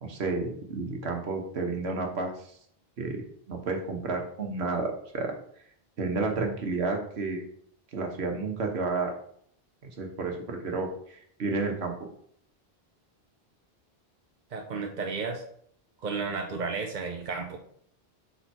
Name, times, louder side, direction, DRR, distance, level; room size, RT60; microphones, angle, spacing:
voice 1, 0.0-2.3 3.0-3.2 3.5-5.3 6.0-7.4 7.9-9.1 10.0-11.9, right 3 dB, 90° right, 2 dB, 1.4 m, -31 dB
voice 2, 14.5-15.4 16.0-17.6, right 4 dB, 50° right, 2 dB, 0.8 m, -33 dB
5.6 x 4.2 x 4.5 m, 0.64 s
omnidirectional pair, 1.0 m